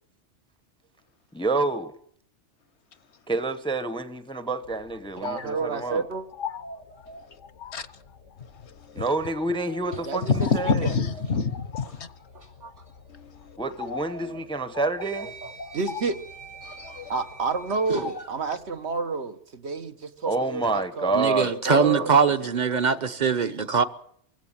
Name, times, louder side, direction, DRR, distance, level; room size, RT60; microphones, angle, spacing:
voice 1, 1.3-1.9 3.3-6.0 8.9-10.2 10.5-10.9 13.6-15.3 20.3-22.1, right 3 dB, 5° left, 0.8 m, -28 dB
sound 1, 4.6-19.0, left 6 dB, 85° left, 1.5 m, -42 dB
voice 2, 5.2-6.3 10.1-11.0 14.2-14.3 15.7-16.2 17.1-22.1, right 4 dB, 65° right, 1.4 m, -30 dB
sound 2, 9.5-12.5 12.8-13.0 14.1-14.2 15.0-18.3, right 5 dB, 80° right, 4.5 m, -47 dB
voice 3, 10.3-12.1 13.1-13.3 16.6-17.1, left 5 dB, 70° left, 1.3 m, -26 dB
voice 4, 21.1-23.8, right 5 dB, 40° right, 1.1 m, -22 dB
23.5 x 16.5 x 7.4 m
omnidirectional pair, 1.2 m